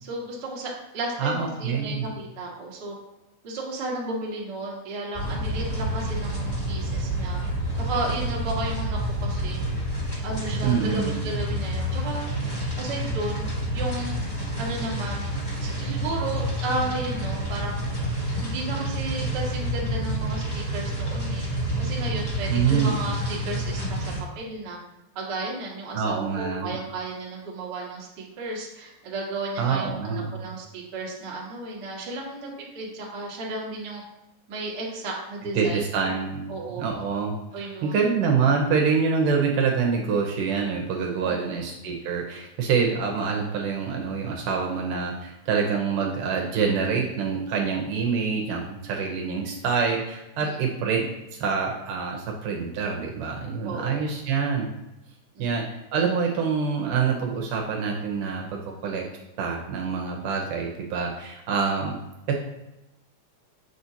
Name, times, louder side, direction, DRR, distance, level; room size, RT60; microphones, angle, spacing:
voice 1, 0.0-2.9 3.4-7.4 7.8-9.6 10.2-12.3 12.8-14.2 14.6-15.3 15.6-17.8 18.4-21.5 21.8-24.8 25.1-34.0 34.5-36.1 36.5-36.8 37.5-38.0 41.2-41.3 50.4-50.6 53.6-54.0 55.3-55.5, right 2 dB, 45° right, -4 dB, 1.5 m, -33 dB
voice 2, 1.2-2.1 10.6-11.2 22.5-23.0 25.9-26.7 29.6-30.3 35.5-37.4 37.8-54.7 55.4-55.6 55.9-59.1 59.4-62.0 62.3-62.4, right 5 dB, 75° right, 1 dB, 2.3 m, -26 dB
sound 1, 5.1-24.2, right 1 dB, 10° left, 2.0 m, -29 dB
7.7 x 6.3 x 2.8 m, 0.96 s
omnidirectional pair, 4.0 m